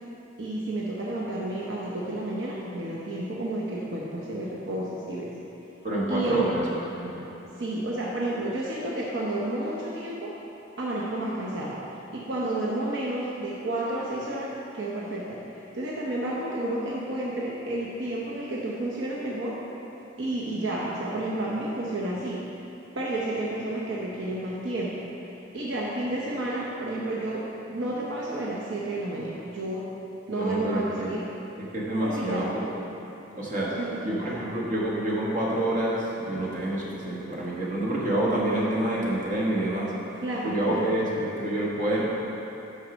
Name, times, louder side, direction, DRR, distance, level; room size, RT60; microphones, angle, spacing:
voice 1, 0.4-5.3 6.1-6.4 7.6-10.3 10.8-11.8 12.1-15.4 15.7-19.6 20.2-22.4 22.9-25.0 25.5-29.9 30.3-31.3 32.0-32.5 33.8-34.4 40.2-41.3, right 1 dB, 70° right, -5 dB, 0.8 m, -31 dB
voice 2, 5.8-7.3 30.3-31.1 31.6-33.0 33.3-39.9 40.4-42.0, right 1 dB, 45° right, -5 dB, 1.4 m, -28 dB
6.3 x 5.7 x 6.1 m, 2.9 s
head